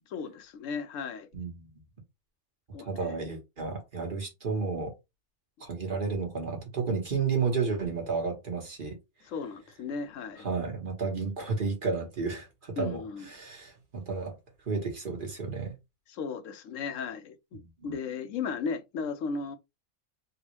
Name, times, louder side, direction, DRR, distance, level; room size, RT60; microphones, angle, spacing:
voice 1, 0.1-1.3 2.7-3.2 9.2-10.5 12.8-13.3 16.1-19.6, left 5 dB, 70° left, 1.0 m, -36 dB
voice 2, 2.9-4.9 5.6-9.0 10.4-13.0 13.3-14.3 14.7-15.7 17.8-17.9, right 4 dB, 40° right, 1.3 m, -32 dB
3.5 x 2.4 x 3.0 m
omnidirectional pair, 1.4 m